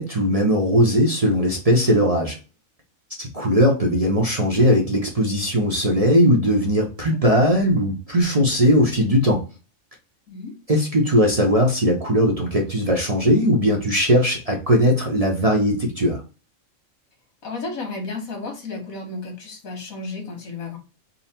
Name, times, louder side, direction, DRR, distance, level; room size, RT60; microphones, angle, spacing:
voice 1, 0.0-2.4 3.2-9.4 10.7-16.2, equal, 35° right, 0 dB, 0.6 m, -19 dB
voice 2, 7.1-7.4 10.3-10.6 17.4-20.8, left 3 dB, 85° left, 3 dB, 1.6 m, -33 dB
3.9 x 2.0 x 4.2 m, 0.33 s
omnidirectional pair, 1.4 m